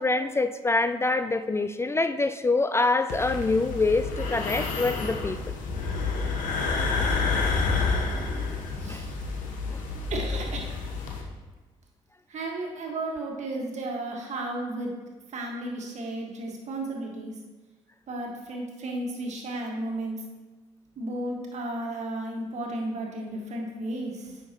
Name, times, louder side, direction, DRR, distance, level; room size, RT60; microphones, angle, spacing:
voice 1, 0.0-5.4 8.9-9.0 9.7-9.8, left 3 dB, 20° left, 10 dB, 0.3 m, -25 dB
sound 1, 3.1-11.2, left 4 dB, 75° left, 1.0 m, -29 dB
voice 2, 8.8-9.2 9.6-9.7 10.1-10.8 12.3-15.0 15.3-17.4 18.1-20.2 21.0-24.4, right 2 dB, 55° right, 0 dB, 1.6 m, -33 dB
9.3 x 5.8 x 3.0 m, 1.2 s
supercardioid pair, 60°, 14 cm